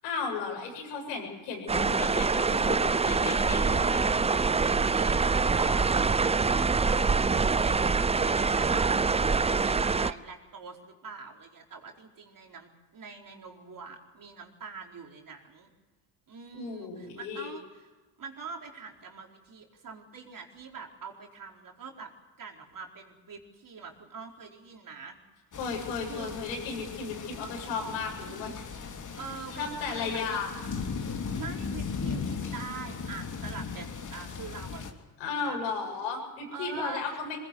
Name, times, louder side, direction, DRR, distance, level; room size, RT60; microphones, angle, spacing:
voice 1, 0.0-4.1 16.5-17.5 25.6-28.7 29.6-30.5 35.2-37.4, left 5 dB, 80° left, 0 dB, 7.9 m, -35 dB
sound 1, 1.7-10.1, right 4 dB, 15° right, 0.6 m, -25 dB
voice 2, 4.6-15.7 16.3-17.9 18.2-22.1 22.4-25.2 26.1-26.4 29.2-30.4 31.4-35.0 35.4-35.8 36.5-37.2, right 5 dB, 40° right, 1 dB, 4.6 m, -44 dB
sound 2, 25.5-34.9, left 5 dB, 35° left, 3.0 m, -37 dB
22.5 x 20.0 x 8.0 m, 1.3 s
hypercardioid pair, 65°, 50 cm